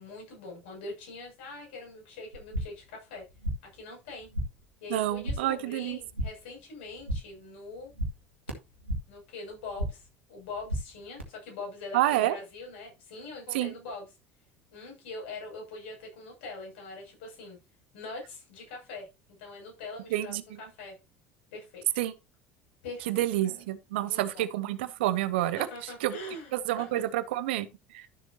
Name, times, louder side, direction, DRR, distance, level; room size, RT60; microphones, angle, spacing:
voice 1, 0.0-3.3 3.6-4.3 4.8-7.9 9.1-14.1 14.7-17.6 17.9-21.0 21.5-21.9 22.8-23.5 24.0-24.5 25.6-27.0, left 3 dB, 65° left, 6.8 m, -43 dB
sound 1, 2.3-2.9 3.2-3.8 4.1-4.7 5.0-5.6 5.9-6.5 6.8-7.4 7.7-9.2 9.5-10.1 10.4-11.2, right 1 dB, 85° right, 2.4 m, -35 dB
voice 2, 4.9-6.0 11.9-12.4 13.5-13.7 20.1-20.4 22.0-22.1 23.1-25.7 26.0-26.2 26.5-27.7 27.9-28.1, right 14 dB, 65° right, 1.0 m, -28 dB
13.0 x 7.6 x 2.8 m
figure-of-eight pair, 65°, 6 cm